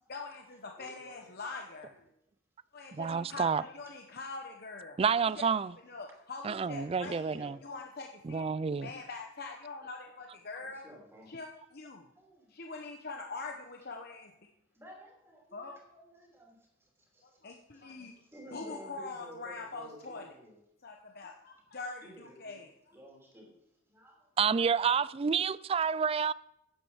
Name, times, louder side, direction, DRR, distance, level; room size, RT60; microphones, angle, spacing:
voice 1, 0.1-2.0 2.7-5.0 5.4-5.5 5.9-8.5 8.8-10.8 11.3-12.1 12.5-14.3 15.5-15.8 17.4-18.1 18.5-20.3 20.8-22.7, left 3 dB, 50° left, 1.0 m, -43 dB
voice 2, 0.8-1.3 7.3-7.5 10.6-11.3 12.2-12.5 14.7-17.8 18.3-20.6 22.0-22.6 22.9-23.5 23.9-24.3, equal, 15° right, 3.0 m, -53 dB
voice 3, 2.9-3.6 5.0-5.7 6.4-7.6 8.2-8.9 24.4-26.3, right 6 dB, 30° right, 0.3 m, -29 dB
10.0 x 7.8 x 7.2 m
head